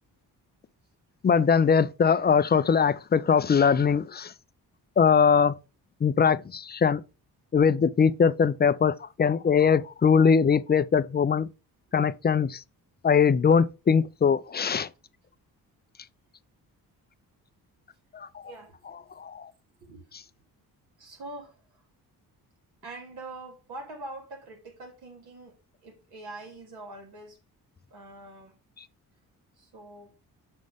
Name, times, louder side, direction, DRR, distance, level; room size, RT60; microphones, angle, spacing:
voice 1, 1.2-4.3 5.0-5.5 6.0-7.0 7.5-11.5 11.9-12.6 13.0-14.9 18.1-18.4 19.2-19.5, left 6 dB, 25° left, 0.5 m, -21 dB
voice 2, 18.4-19.1 19.8-20.0 21.0-21.9 22.8-27.4 27.9-28.6 29.5-30.1, right 2 dB, 80° right, 2.7 m, -44 dB
6.3 x 5.2 x 3.5 m
cardioid pair, 65°, 38 cm